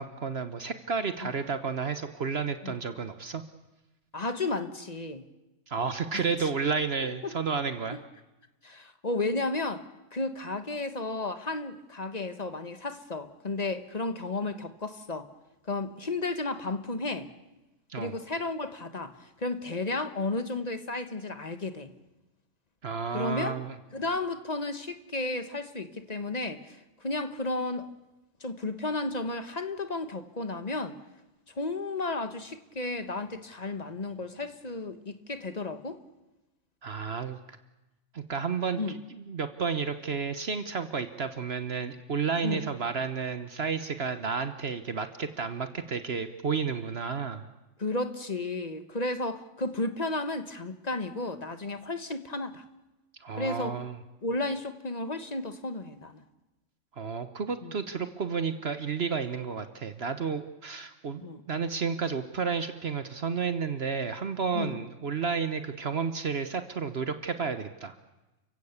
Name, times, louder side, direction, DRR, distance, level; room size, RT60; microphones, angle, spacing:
voice 1, 0.0-3.4 5.7-8.0 17.9-18.1 22.8-23.7 36.8-37.4 38.1-47.4 53.2-54.0 56.9-61.2 61.5-68.0, right 5 dB, 55° right, 9 dB, 1.3 m, -31 dB
voice 2, 4.1-5.3 7.2-7.3 7.9-8.0 8.6-9.8 10.1-15.3 15.7-17.3 18.0-19.1 19.4-21.9 23.1-23.6 23.9-27.9 28.4-31.0 31.6-36.0 38.7-39.0 42.4-42.7 47.8-52.6 53.4-53.8 54.2-56.2 57.6-57.7 61.2-61.4 64.5-64.8, left 2 dB, 35° left, 10 dB, 1.4 m, -33 dB
29.5 x 16.0 x 8.2 m, 1.0 s
omnidirectional pair, 1.3 m